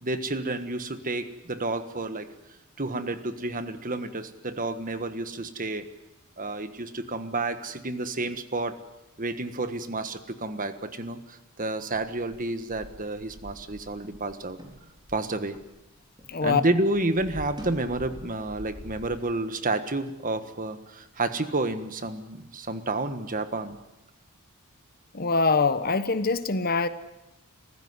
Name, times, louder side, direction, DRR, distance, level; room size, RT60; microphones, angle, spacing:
voice 1, 0.0-2.3 2.8-5.8 6.4-8.8 9.2-14.6 15.1-15.6 16.4-23.8, right 2 dB, 35° right, 10 dB, 1.5 m, -30 dB
sound 1, 12.7-16.4 16.6-19.2, equal, 20° right, 4.6 m, -45 dB
voice 2, 16.3-16.6 25.1-26.9, left 4 dB, 40° left, 12 dB, 1.1 m, -24 dB
28.0 x 15.5 x 9.6 m, 0.95 s
head